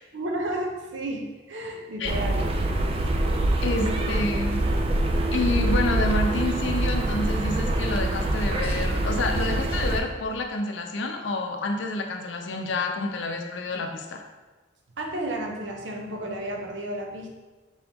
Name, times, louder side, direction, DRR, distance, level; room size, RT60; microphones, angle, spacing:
voice 1, 0.1-2.5 3.8-4.1 15.0-17.3, right 1 dB, 75° right, 1 dB, 0.7 m, -32 dB
sound 1, 2.0-10.0, right 1 dB, 30° right, 0.4 m, -25 dB
voice 2, 3.6-4.6 5.3-14.2, left 2 dB, 75° left, 4 dB, 0.5 m, -28 dB
4.4 x 3.0 x 3.5 m, 1.2 s
head